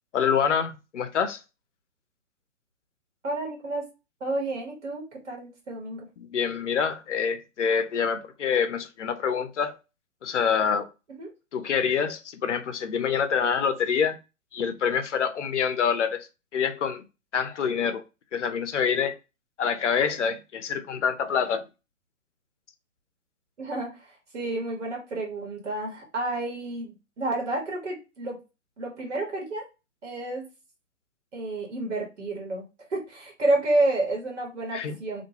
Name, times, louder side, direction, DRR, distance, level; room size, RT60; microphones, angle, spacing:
voice 1, 0.1-1.4 6.2-9.8 10.2-10.9 11.5-14.2 14.5-17.0 17.3-18.0 18.3-19.1 19.6-21.6 34.7-35.0, left 7 dB, 65° left, 0.6 m, -26 dB
voice 2, 3.2-3.8 4.2-6.0 11.1-11.3 23.6-28.4 28.8-29.6 30.0-30.4 31.3-32.6 32.9-35.2, right 2 dB, 60° right, 1.3 m, -30 dB
2.5 x 2.2 x 2.8 m
figure-of-eight pair, 125°, 39 cm